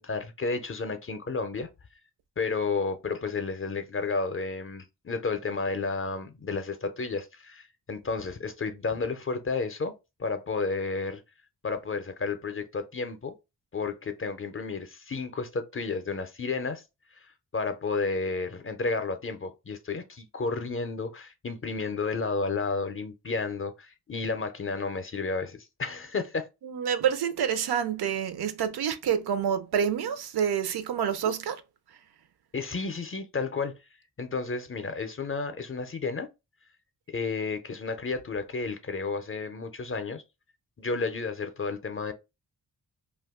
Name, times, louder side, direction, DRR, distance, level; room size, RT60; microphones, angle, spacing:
voice 1, 0.0-1.7 2.4-9.9 10.2-11.2 11.6-13.3 13.7-16.8 17.1-17.3 17.5-26.5 32.5-33.7 34.2-36.3 37.1-40.2 40.8-42.1, left 4 dB, 35° left, 0.5 m, -32 dB
voice 2, 26.6-31.6, right 8 dB, 80° right, 0.5 m, -28 dB
2.6 x 2.3 x 3.5 m
wide cardioid pair, 85°, 38 cm